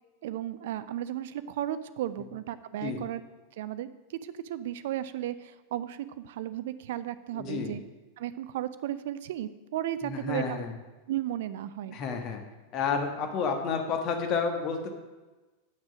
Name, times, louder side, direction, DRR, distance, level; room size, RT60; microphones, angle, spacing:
voice 1, 0.2-3.2 3.6-7.8 8.2-10.6 11.1-12.0, right 12 dB, 55° right, 14 dB, 0.4 m, -34 dB
voice 2, 7.3-7.7 10.0-10.7 11.9-12.4 12.7-14.9, left 5 dB, 35° left, 5 dB, 1.4 m, -30 dB
8.8 x 6.1 x 6.2 m, 1.2 s
figure-of-eight pair, 90°, 0 cm